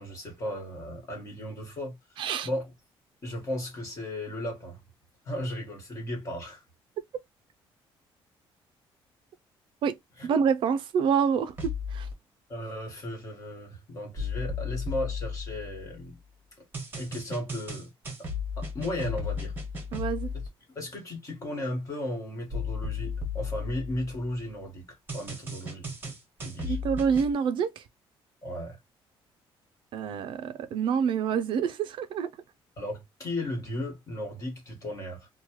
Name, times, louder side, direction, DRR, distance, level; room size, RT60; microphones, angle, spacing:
voice 1, 0.0-2.7 3.2-4.8 5.2-6.6 10.2-10.3 12.5-16.2 17.0-17.9 18.2-18.3 18.6-19.5 20.7-26.1 26.4-26.8 28.4-28.8 32.8-35.3, left 1 dB, 35° left, 1.4 m, -35 dB
voice 2, 2.2-2.5 9.8-10.0 10.2-12.1 19.9-20.3 26.6-27.8 29.9-32.3, right 7 dB, 60° right, 0.4 m, -27 dB
sound 1, 11.6-12.1 14.2-16.0 16.7-20.5 22.5-24.4 25.1-27.3, left 4 dB, 20° right, 1.1 m, -35 dB
3.0 x 2.2 x 2.9 m
cardioid pair, 165°, 10 cm